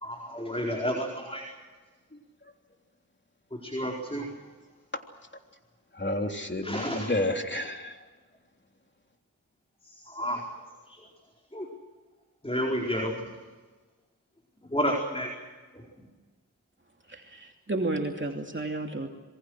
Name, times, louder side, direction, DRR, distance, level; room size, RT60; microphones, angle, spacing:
voice 1, 0.0-1.5 3.6-4.3 6.6-7.1 9.9-10.4 10.9-11.0 11.5-11.7 12.4-13.3 14.7-15.3, equal, 15° left, 1 dB, 4.6 m, -30 dB
voice 2, 5.9-8.0, left 1 dB, 30° left, 4 dB, 3.3 m, -30 dB
voice 3, 17.1-19.1, right 2 dB, 35° right, 1 dB, 2.9 m, -32 dB
27.0 x 23.0 x 6.5 m, 1.3 s
cardioid pair, 45°, 35 cm